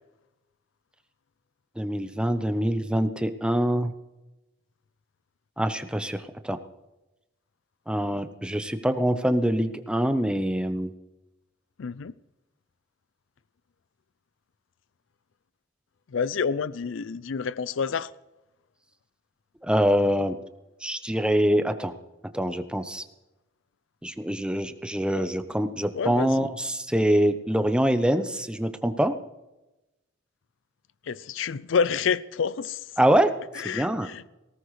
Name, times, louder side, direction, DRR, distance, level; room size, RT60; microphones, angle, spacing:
voice 1, 1.8-3.9 5.6-6.6 7.9-10.9 19.6-20.4 20.8-21.9 22.3-23.0 24.0-29.1 33.0-33.3 33.7-34.1, equal, 5° right, 0.8 m, -24 dB
voice 2, 11.8-12.1 16.1-18.1 25.1-25.3 25.9-26.5 31.0-32.8 33.5-34.3, left 6 dB, 70° left, 0.5 m, -28 dB
19.0 x 17.5 x 3.2 m
head